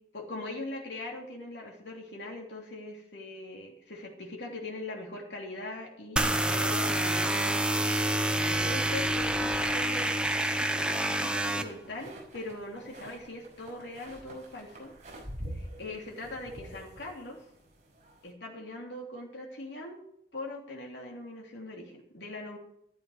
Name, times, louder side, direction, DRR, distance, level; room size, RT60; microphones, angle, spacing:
voice 1, 0.1-7.8 8.4-14.9 15.5-17.4 18.2-20.0 20.3-22.6, left 2 dB, 90° left, -1 dB, 3.1 m, -41 dB
sound 1, 6.2-11.6, right 1 dB, 5° right, 1.0 m, -27 dB
sound 2, 8.5-18.3, right 1 dB, 45° right, 6.1 m, -47 dB
13.0 x 13.0 x 4.9 m, 0.73 s
head